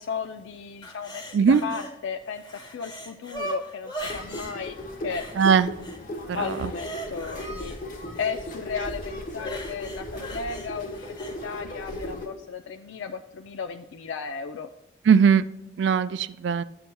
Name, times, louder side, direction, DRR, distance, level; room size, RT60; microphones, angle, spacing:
voice 1, 0.0-4.8 5.0-5.3 6.3-7.8 8.2-14.7, left 5 dB, 85° left, 6 dB, 0.4 m, -35 dB
sound 1, 0.8-1.9 2.3-4.5 5.1-6.0 6.3-8.3 9.3-11.3 11.8-12.0, right 1 dB, 20° left, 1.1 m, -39 dB
sound 2, 4.0-12.3, left 1 dB, 45° left, 1.2 m, -37 dB
voice 2, 5.4-5.7 6.3-6.4 15.1-15.4 15.8-16.6, right 6 dB, 70° right, 15 dB, 0.3 m, -19 dB
13.0 x 7.8 x 2.2 m, 0.85 s
head